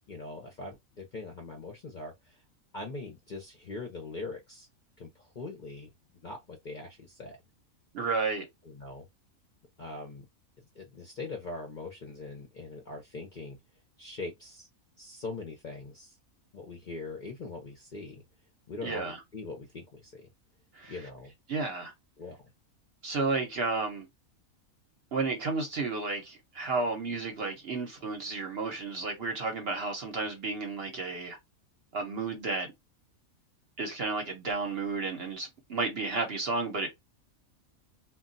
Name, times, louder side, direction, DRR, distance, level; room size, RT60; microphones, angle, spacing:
voice 1, 0.1-2.4 2.7-4.7 5.0-5.9 6.2-7.4 8.6-9.1 9.8-10.2 10.7-13.6 14.0-14.7 15.0-16.2 16.5-18.2 18.7-20.3 20.9-21.3 22.2-22.4, left 3 dB, 50° left, 0.6 m, -42 dB
voice 2, 7.9-8.4 18.8-19.2 20.7-20.9 21.5-21.9 23.0-24.1 25.1-31.4 31.9-32.7 33.8-36.9, right 3 dB, 55° right, 0.8 m, -32 dB
2.3 x 2.2 x 3.8 m
omnidirectional pair, 1.5 m